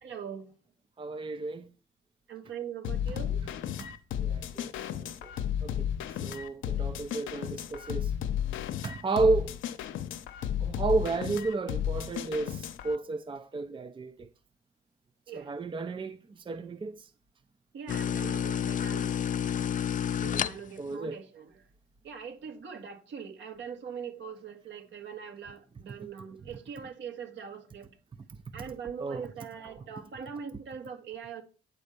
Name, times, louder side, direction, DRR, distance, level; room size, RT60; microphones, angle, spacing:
voice 1, 0.0-0.5 2.3-3.4 15.3-15.5 17.7-19.2 20.2-21.6 22.0-27.9 28.5-31.4, right 7 dB, 70° right, 2.0 m, -42 dB
voice 2, 1.0-1.7 3.1-3.2 3.8-3.9 4.2-5.3 5.6-5.9 6.2-8.1 8.8-9.5 10.6-14.3 15.3-17.1 20.8-21.2 25.9-26.0 28.5-28.6 29.0-29.3, right 3 dB, 25° right, 0.6 m, -32 dB
sound 1, 2.8-13.0, left 9 dB, 80° left, 0.8 m, -33 dB
sound 2, 17.9-20.9, left 8 dB, 40° left, 0.4 m, -30 dB
9.7 x 4.3 x 6.6 m
cardioid pair, 90°, 20 cm